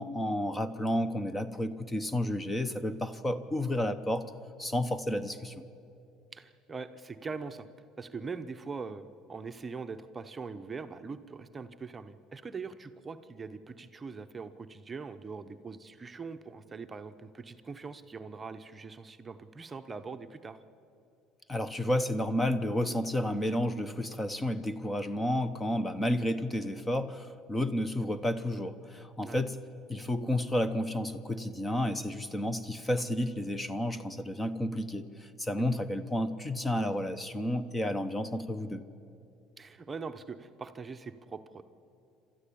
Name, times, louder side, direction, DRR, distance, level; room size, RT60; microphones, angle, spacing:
voice 1, 0.0-4.3 4.6-5.6 21.5-29.6 29.9-38.8, left 1 dB, 15° left, 13 dB, 0.9 m, -31 dB
voice 2, 6.3-7.7 8.0-20.6 29.2-29.4 35.6-35.7 39.6-41.6, right 4 dB, 20° right, 8 dB, 0.8 m, -42 dB
28.0 x 13.0 x 8.6 m, 2.7 s
cardioid pair, 110°, 0 cm